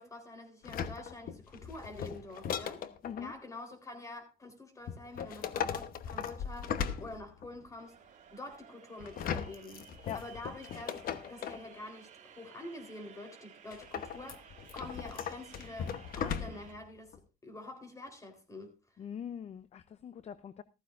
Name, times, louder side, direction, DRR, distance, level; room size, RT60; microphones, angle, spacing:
voice 1, 0.0-2.8 3.2-10.9 11.3-19.1, left 2 dB, 20° left, 3.8 m, -47 dB
sound 1, 0.6-3.3 4.9-7.6 9.0-11.7 13.7-16.8 17.1-17.2, left 8 dB, 60° left, 1.1 m, -38 dB
voice 2, 3.0-3.3 10.1-10.3 19.0-20.6, left 8 dB, 40° left, 0.6 m, -42 dB
sound 2, 7.8-16.7, right 8 dB, 45° right, 2.4 m, -56 dB
14.5 x 14.5 x 2.5 m
cardioid pair, 110°, 17 cm